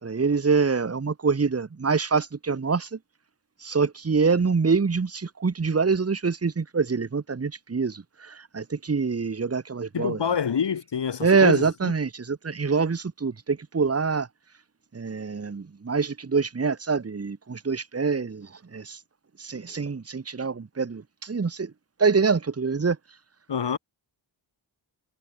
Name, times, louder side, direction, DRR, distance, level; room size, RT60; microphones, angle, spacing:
voice 1, 0.0-3.0 3.6-10.2 11.2-14.3 14.9-19.0 19.4-21.7 22.0-23.0, right 5 dB, 35° right, 2.8 m, -25 dB
voice 2, 9.9-11.9 23.5-23.8, left 7 dB, 70° left, 7.1 m, -27 dB
wide cardioid pair, 160°, 44 cm